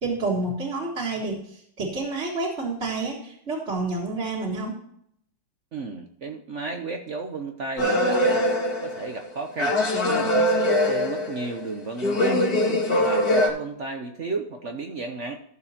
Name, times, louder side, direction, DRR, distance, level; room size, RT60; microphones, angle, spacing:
voice 1, 0.0-4.7, right 3 dB, 35° right, -5 dB, 1.9 m, -29 dB
voice 2, 5.7-8.4 8.8-9.8 10.1-12.5 13.0-15.4, right 3 dB, 60° right, 5 dB, 0.7 m, -33 dB
sound 1, 7.8-9.3 9.6-11.6 12.0-13.5, left 1 dB, 45° left, 2.2 m, -22 dB
14.0 x 7.0 x 2.8 m, 0.71 s
omnidirectional pair, 2.3 m